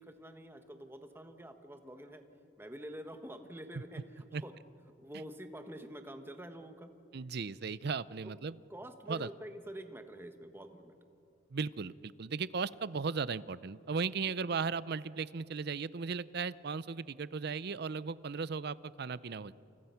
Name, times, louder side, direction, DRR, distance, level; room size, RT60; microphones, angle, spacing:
voice 1, 0.0-2.2 2.6-4.5 5.0-6.9 8.2-8.3 8.7-10.9 14.2-14.3, equal, 10° right, 7 dB, 1.4 m, -47 dB
voice 2, 7.1-8.5 9.1-9.3 11.5-19.5, right 5 dB, 60° right, 18 dB, 0.6 m, -36 dB
29.0 x 28.5 x 5.8 m, 2.7 s
head